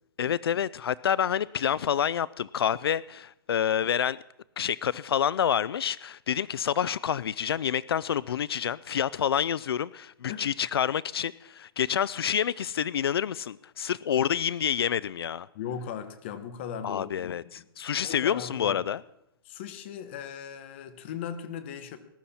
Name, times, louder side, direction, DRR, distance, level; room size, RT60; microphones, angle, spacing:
voice 1, 0.2-4.2 4.6-15.5 16.8-19.0, left 9 dB, 80° left, 0.4 m, -28 dB
voice 2, 15.5-17.7 18.0-18.8 19.4-22.0, left 8 dB, 30° left, 1.1 m, -38 dB
20.0 x 12.0 x 4.3 m
hypercardioid pair, 170°, 13 cm